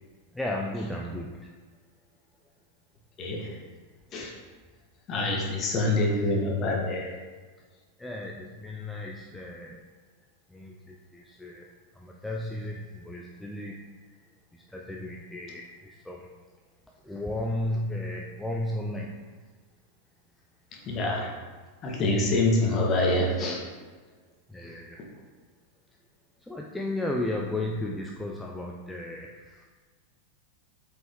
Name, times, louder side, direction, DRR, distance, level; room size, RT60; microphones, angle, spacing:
voice 1, 0.3-1.5 5.1-6.5 8.0-9.9 10.5-13.9 14.5-16.3 17.0-19.3 22.8-23.4 24.5-25.0 26.4-29.6, left 1 dB, 5° left, -1 dB, 0.6 m, -35 dB
voice 2, 3.2-3.6 4.1-4.3 5.1-7.1 20.7-21.3 21.8-23.6, left 2 dB, 30° left, -1 dB, 1.7 m, -26 dB
7.7 x 5.3 x 3.7 m, 1.4 s
figure-of-eight pair, 90°, 0 cm